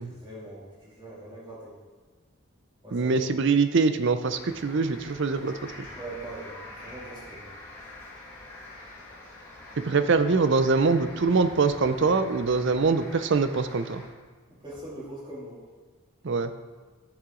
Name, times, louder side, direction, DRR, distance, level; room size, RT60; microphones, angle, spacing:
voice 1, 0.0-1.8 2.8-3.3 6.0-7.5 14.5-15.6, right 1 dB, 20° right, -7 dB, 2.6 m, -42 dB
voice 2, 2.9-5.5 9.9-14.0 16.2-16.5, right 4 dB, 55° right, 10 dB, 0.5 m, -23 dB
sound 1, 4.3-14.1, left 1 dB, 10° left, 1.9 m, -45 dB
11.0 x 6.8 x 3.8 m, 1.4 s
head